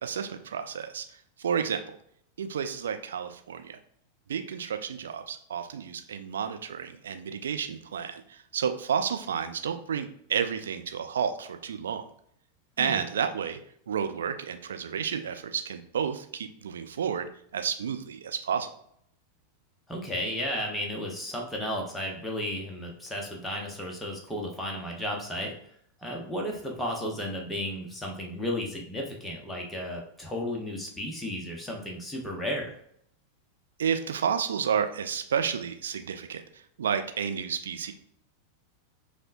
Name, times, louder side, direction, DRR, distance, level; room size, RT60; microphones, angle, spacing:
voice 1, 0.0-2.0 2.4-3.8 4.3-12.1 12.8-13.6 13.9-18.7 33.8-37.9, right 7 dB, 65° right, 7 dB, 0.3 m, -31 dB
voice 2, 19.9-25.5 26.0-32.8, left 1 dB, 5° left, -1 dB, 0.8 m, -33 dB
5.2 x 2.1 x 2.5 m, 0.67 s
figure-of-eight pair, 90°, 0 cm